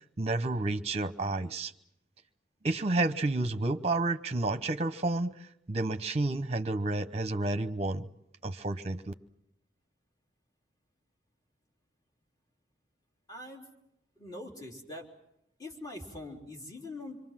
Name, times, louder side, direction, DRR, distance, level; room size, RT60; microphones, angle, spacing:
voice 1, 0.2-1.7 2.6-5.4 5.7-8.1 8.4-9.1, right 2 dB, 35° right, 0.9 m, -30 dB
voice 2, 13.3-13.7 14.2-15.1 15.6-17.2, left 2 dB, 20° left, 3.8 m, -43 dB
26.5 x 24.0 x 7.6 m
head